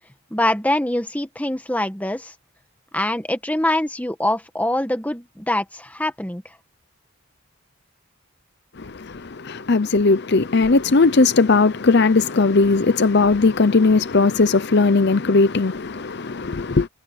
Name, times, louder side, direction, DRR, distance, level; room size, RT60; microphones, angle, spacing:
voice 1, 0.3-2.3 2.9-6.4, left 1 dB, 5° left, 1.4 m, -24 dB
voice 2, 8.8-16.9, left 3 dB, 50° left, 0.7 m, -18 dB
head